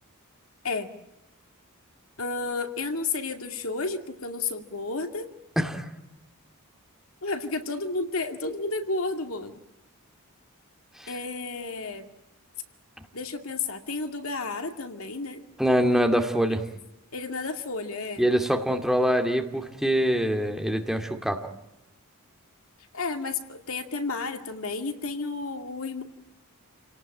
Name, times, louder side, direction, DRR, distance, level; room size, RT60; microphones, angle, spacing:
voice 1, 2.2-5.3 7.2-9.6 11.1-12.1 13.1-15.4 17.1-18.3 22.9-26.0, left 3 dB, 70° left, 6 dB, 2.4 m, -32 dB
voice 2, 5.6-5.9 11.0-11.1 15.6-16.6 18.2-21.5, equal, ahead, 4 dB, 2.3 m, -24 dB
28.5 x 18.5 x 8.9 m, 0.94 s
head